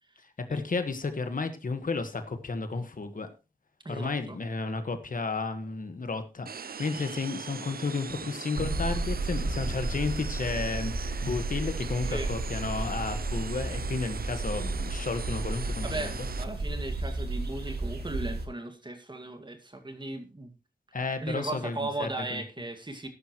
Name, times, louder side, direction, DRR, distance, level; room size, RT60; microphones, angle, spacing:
voice 1, 0.5-3.3 3.9-16.1 20.9-22.4, left 4 dB, 60° left, 8 dB, 1.6 m, -32 dB
voice 2, 3.8-4.4 12.0-12.3 15.6-20.6 21.2-23.1, right 2 dB, 30° right, 6 dB, 2.1 m, -37 dB
sound 1, 6.5-16.5, right 6 dB, 70° right, 0.7 m, -41 dB
sound 2, 8.5-18.5, right 2 dB, 85° right, 2.1 m, -33 dB
13.5 x 12.0 x 3.1 m, 0.31 s
wide cardioid pair, 100°, 16 cm